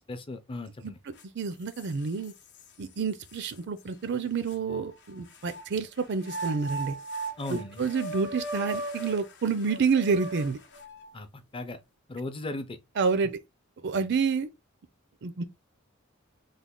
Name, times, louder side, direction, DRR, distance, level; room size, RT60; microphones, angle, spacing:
voice 1, 0.1-1.0 7.4-7.9 11.1-11.8 12.1-12.8, left 2 dB, 25° left, 0.6 m, -37 dB
voice 2, 0.8-2.3 2.8-7.0 7.5-10.6 13.0-13.4 13.8-14.5 15.2-15.4, right 5 dB, 55° right, 0.5 m, -29 dB
sound 1, 1.2-1.3 1.7-2.7 3.3-3.4 4.5-5.6 6.2-11.1, right 2 dB, 60° left, 0.8 m, -38 dB
3.3 x 2.2 x 3.7 m
head